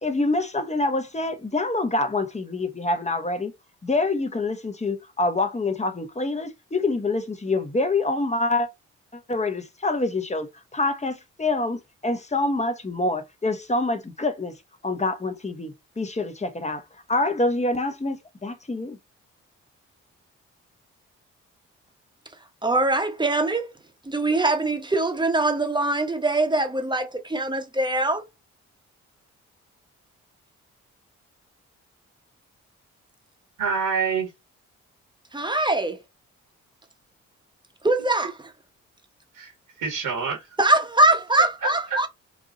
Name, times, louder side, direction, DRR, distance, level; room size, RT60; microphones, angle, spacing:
voice 1, 0.0-3.5 3.8-8.7 9.1-14.5 14.8-16.8 17.1-19.0, left 2 dB, 20° left, 1.4 m, -26 dB
voice 2, 22.6-23.7 24.0-28.2 35.3-36.0 37.8-38.3 40.6-42.1, right 2 dB, 15° right, 1.3 m, -22 dB
voice 3, 33.6-34.3 39.3-39.5 39.8-40.5 41.6-42.1, right 5 dB, 85° right, 2.3 m, -26 dB
4.7 x 2.6 x 4.0 m
supercardioid pair, 50°, 32 cm